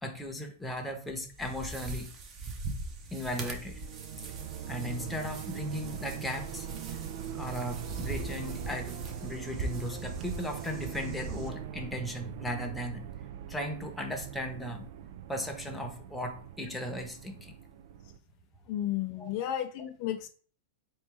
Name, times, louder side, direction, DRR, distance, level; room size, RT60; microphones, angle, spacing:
voice 1, 0.0-2.1 3.1-3.8 4.7-6.7 7.3-13.0 13.5-14.9 15.3-17.5 19.2-19.3, left 1 dB, 5° left, 3 dB, 0.8 m, -37 dB
sound 1, 1.2-11.5, right 2 dB, 35° right, 0.8 m, -42 dB
sound 2, 3.5-18.2, right 9 dB, 60° right, 0.3 m, -42 dB
voice 2, 18.7-20.3, left 12 dB, 50° left, 7 dB, 0.4 m, -33 dB
4.3 x 3.1 x 3.4 m, 0.43 s
hypercardioid pair, 130°, 0 cm